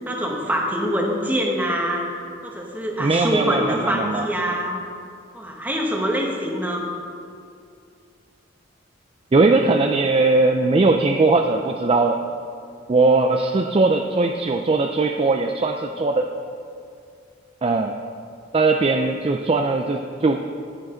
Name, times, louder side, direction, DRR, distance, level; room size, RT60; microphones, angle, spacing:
voice 1, 0.1-2.0 2.4-4.8 5.3-6.8, equal, 10° right, -1 dB, 1.3 m, -24 dB
voice 2, 3.0-4.2 9.3-12.2 12.9-16.3 17.6-17.9 18.5-20.6, right 3 dB, 30° right, 4 dB, 0.4 m, -19 dB
10.5 x 9.8 x 3.9 m, 2.4 s
head